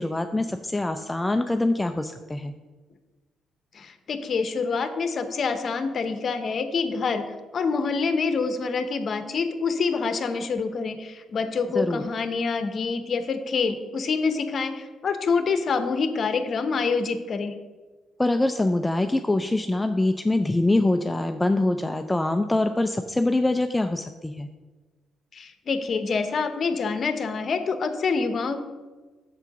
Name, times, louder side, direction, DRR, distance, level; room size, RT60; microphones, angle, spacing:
voice 1, 0.0-2.5 11.7-12.0 18.2-24.5, left 2 dB, 15° left, 8 dB, 0.4 m, -24 dB
voice 2, 3.7-7.3 7.5-17.5 25.3-28.6, left 4 dB, 55° left, 9 dB, 0.8 m, -26 dB
6.9 x 4.5 x 5.2 m, 1.3 s
hypercardioid pair, 55°, 0 cm